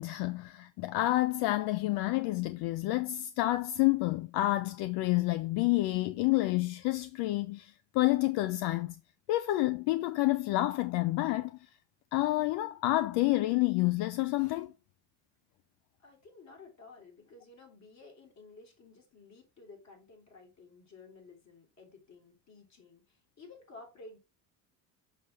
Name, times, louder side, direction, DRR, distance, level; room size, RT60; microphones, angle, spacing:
voice 1, 0.0-9.0 9.3-11.5 12.1-14.7, left 18 dB, 80° left, 0.6 m, -29 dB
voice 2, 16.0-24.2, left 3 dB, 45° left, 3.7 m, -54 dB
6.5 x 5.9 x 3.4 m
supercardioid pair, 85°, 39 cm